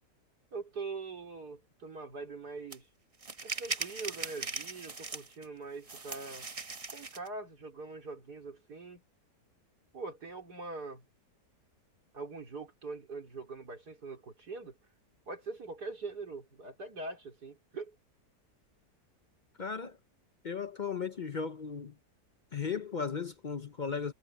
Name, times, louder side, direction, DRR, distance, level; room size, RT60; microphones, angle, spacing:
voice 1, 0.5-2.9 3.4-6.5 6.9-9.0 9.9-11.0 12.1-14.8 15.3-18.0, right 3 dB, 70° right, 4.5 m, -43 dB
sound 1, 2.7-2.8 3.2-5.4 5.9-7.3, right 4 dB, 25° right, 1.0 m, -39 dB
voice 2, 19.6-20.0 20.4-22.0 22.5-24.1, left 6 dB, 50° left, 0.5 m, -36 dB
omnidirectional pair, 1.8 m